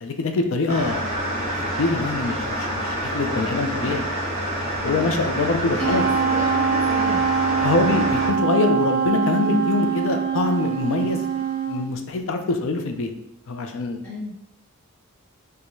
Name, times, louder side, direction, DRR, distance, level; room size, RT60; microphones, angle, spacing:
voice 1, 0.0-4.0 4.8-6.1 7.6-13.1 13.5-14.0, left 3 dB, 60° left, 6 dB, 0.4 m, -24 dB
sound 1, 0.7-8.3, equal, 30° right, 1.0 m, -27 dB
voice 2, 3.3-4.1 4.8-7.2 14.0-14.3, left 2 dB, 5° left, -8 dB, 1.1 m, -35 dB
Wind instrument woodwind instrument, 5.8-11.9, right 6 dB, 65° right, 0.5 m, -23 dB
4.5 x 2.1 x 2.6 m, 0.81 s
head